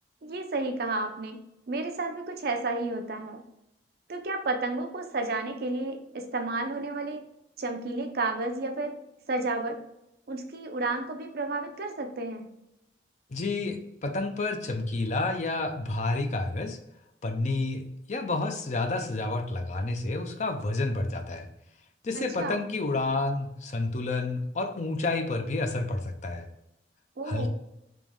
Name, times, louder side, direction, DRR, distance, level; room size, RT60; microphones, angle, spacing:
voice 1, 0.2-1.4 1.7-3.4 4.1-7.2 7.6-8.9 9.3-9.8 10.3-12.5 22.1-22.6 27.2-27.5, right 2 dB, 55° right, 5 dB, 0.5 m, -31 dB
voice 2, 13.3-16.8 17.2-17.8 18.1-21.5 22.0-26.5 27.2-27.5, left 2 dB, 40° left, 5 dB, 0.5 m, -30 dB
3.4 x 3.0 x 3.5 m, 0.86 s
head